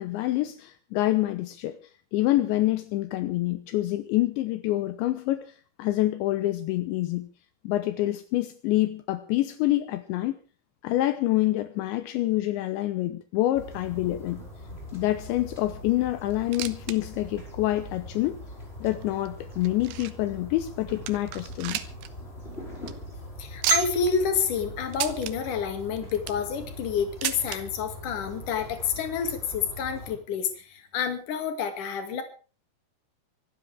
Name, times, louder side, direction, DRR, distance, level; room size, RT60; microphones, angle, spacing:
voice 1, 0.0-1.8 2.1-7.3 7.6-10.3 10.8-14.4 14.9-18.4 18.8-21.8, left 16 dB, 80° left, 11 dB, 3.1 m, -27 dB
sound 1, 13.5-30.1, equal, 10° left, 5.4 m, -42 dB
sound 2, 16.3-17.0 17.3-17.4 18.0-18.1 18.8-20.3 20.7-20.8 21.1-22.1 22.4-22.5 22.8-22.9 23.6-24.1 24.9-25.3 26.0-26.5 27.2-27.6 28.6-28.7 28.9-29.0 29.8-29.9, right 12 dB, 70° right, 2.7 m, -31 dB
voice 2, 23.4-32.2, left 6 dB, 50° left, 7 dB, 3.4 m, -29 dB
25.5 x 13.0 x 3.5 m, 0.38 s
omnidirectional pair, 5.3 m